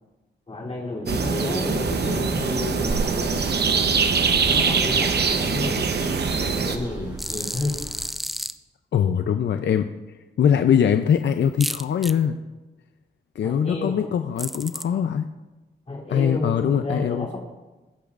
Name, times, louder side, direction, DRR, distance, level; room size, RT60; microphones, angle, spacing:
voice 1, 0.5-3.5 4.4-6.0 6.3-7.8 13.4-14.1 15.9-17.4, left 2 dB, 35° left, -4 dB, 3.1 m, -31 dB
sound 1, 1.1-6.8, right 5 dB, 60° right, 0.9 m, -23 dB
sound 2, 1.8-8.1, right 1 dB, 20° right, 3.7 m, -35 dB
sound 3, 7.2-8.5 11.6-12.1 14.4-14.8, equal, ahead, 0.4 m, -31 dB
voice 2, 8.9-9.9 10.4-12.4 13.4-15.3 16.1-17.3, left 8 dB, 70° left, 8 dB, 0.5 m, -22 dB
21.5 x 8.5 x 2.5 m, 1.1 s
wide cardioid pair, 105°, 19 cm